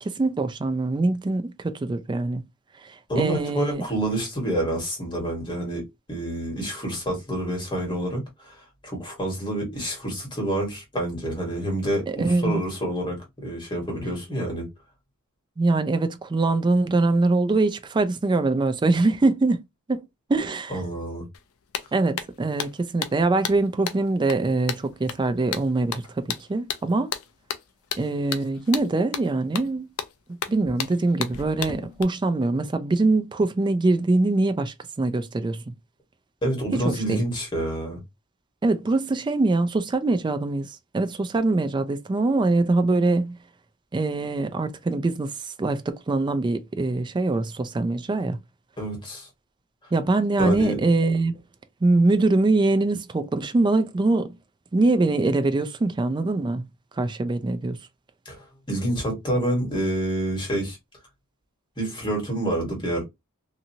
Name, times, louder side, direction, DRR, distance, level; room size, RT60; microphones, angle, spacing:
voice 1, 0.0-2.4 2.8-3.9 12.2-12.6 15.6-19.6 19.9-20.0 20.3-20.8 21.9-27.1 28.0-29.9 30.5-35.6 36.7-37.2 38.6-43.4 43.9-48.4 49.9-51.4 51.8-54.3 54.7-56.6 57.0-57.8, right 2 dB, 20° right, 0.3 m, -23 dB
voice 2, 3.1-14.7 20.7-21.2 36.4-38.0 48.8-49.3 50.4-50.8 58.2-60.8 61.8-63.0, right 1 dB, 20° left, 1.5 m, -28 dB
sound 1, 21.3-21.4 21.7-32.0, left 8 dB, 65° left, 0.5 m, -34 dB
2.8 x 2.6 x 2.6 m
head